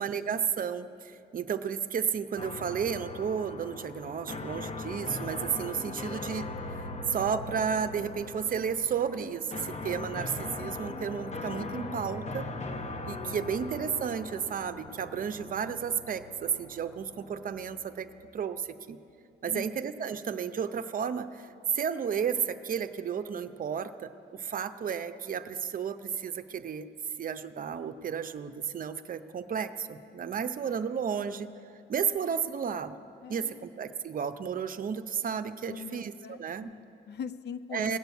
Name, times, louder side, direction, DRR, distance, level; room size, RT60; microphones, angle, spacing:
voice 1, 0.0-6.8 7.1-12.5 13.1-19.0 19.4-21.5 21.7-26.9 27.2-31.5 31.9-33.0 33.3-36.7 37.7-38.0, right 7 dB, 45° right, 10 dB, 0.6 m, -33 dB
sound 1, 2.4-18.3, left 2 dB, 35° left, 0.8 m, -40 dB
voice 2, 19.5-19.8 33.2-33.7 35.7-38.0, left 6 dB, 60° left, 12 dB, 0.5 m, -42 dB
18.0 x 6.8 x 8.2 m, 2.6 s
cardioid pair, 90°, 20 cm